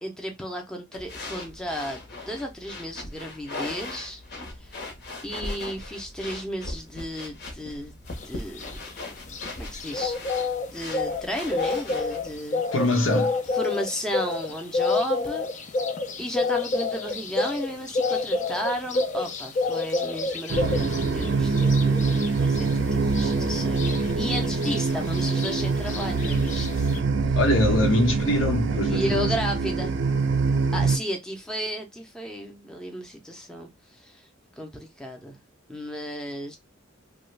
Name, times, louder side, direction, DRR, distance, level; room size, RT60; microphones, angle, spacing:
voice 1, 0.0-4.2 4.6-4.9 5.2-7.9 8.2-8.7 9.6-10.2 10.6-12.6 13.5-15.7 16.2-26.9 27.3-27.4 28.9-30.0 30.7-34.3 34.6-35.4 35.7-36.6, equal, 5° left, 0.6 m, -33 dB
sound 1, 0.9-12.4, left 2 dB, 55° left, 1.0 m, -39 dB
sound 2, 8.1-27.0, left 3 dB, 40° left, 0.5 m, -29 dB
voice 2, 12.7-13.4 27.3-29.3, left 1 dB, 85° left, 1.0 m, -23 dB
sound 3, 20.5-31.0, right 4 dB, 65° right, 0.5 m, -24 dB
3.0 x 2.3 x 3.2 m
head